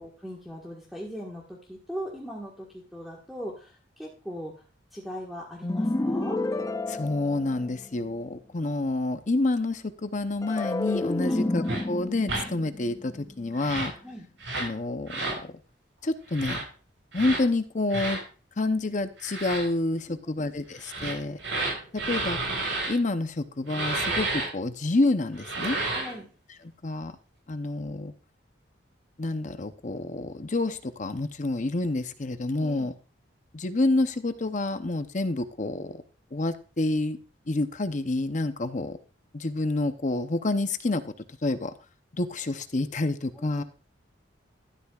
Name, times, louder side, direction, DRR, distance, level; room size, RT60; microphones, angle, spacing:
voice 1, 0.0-4.6 4.9-6.4 11.3-11.5 14.0-14.3 20.1-20.5 25.9-26.3 32.6-32.9 43.3-43.6, equal, ahead, -3 dB, 1.5 m, -39 dB
sound 1, 5.6-8.0 10.4-13.7, left 2 dB, 20° left, 0.4 m, -30 dB
voice 2, 6.9-13.9 14.5-15.6 16.0-16.7 17.1-18.2 18.6-21.4 21.9-22.4 22.9-25.8 26.8-27.1 27.5-28.1 29.2-32.9 33.5-36.0 36.3-37.2 37.5-39.0 39.3-41.1 41.4-41.7 42.1-43.6, left 2 dB, 40° left, 10 dB, 0.7 m, -28 dB
sound 2, 11.6-11.8 12.2-12.4 13.5-14.0 14.4-14.7 15.1-15.4 16.3-16.6 17.1-17.4 17.9-18.2 19.2-19.6 20.8-22.9 23.7-24.5 25.3-26.1, right 2 dB, 80° right, 6.2 m, -31 dB
12.5 x 11.5 x 2.4 m, 0.36 s
head